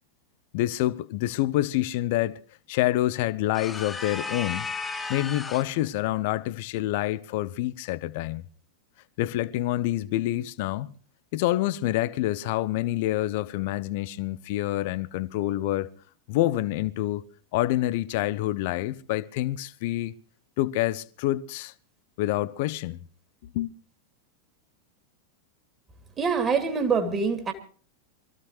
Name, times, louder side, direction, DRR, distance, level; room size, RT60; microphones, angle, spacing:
voice 1, 0.5-2.4 2.7-4.7 5.1-8.4 9.2-10.9 11.3-15.9 16.3-17.2 17.5-20.1 20.6-21.7 22.2-23.0 23.5-23.7, left 15 dB, 50° left, 0.7 m, -27 dB
sound 1, 3.5-5.8, left 4 dB, 15° left, 0.8 m, -34 dB
voice 2, 26.2-27.5, right 5 dB, 20° right, 2.7 m, -25 dB
24.0 x 14.5 x 3.2 m
figure-of-eight pair, 90°, 0 cm